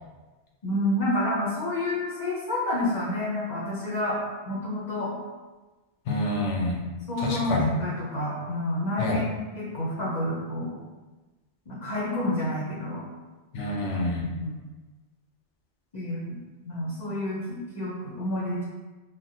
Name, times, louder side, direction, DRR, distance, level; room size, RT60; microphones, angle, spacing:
voice 1, 0.6-4.2 4.5-5.1 7.1-9.3 9.5-10.8 11.7-13.1 14.4-14.5 15.9-16.4 16.6-18.6, left 1 dB, 45° left, -6 dB, 0.6 m, -29 dB
voice 2, 6.1-6.8 7.2-7.7 9.0-9.2 13.5-14.3, left 2 dB, 90° left, 0 dB, 1.0 m, -27 dB
3.7 x 2.1 x 2.7 m, 1.2 s
omnidirectional pair, 1.2 m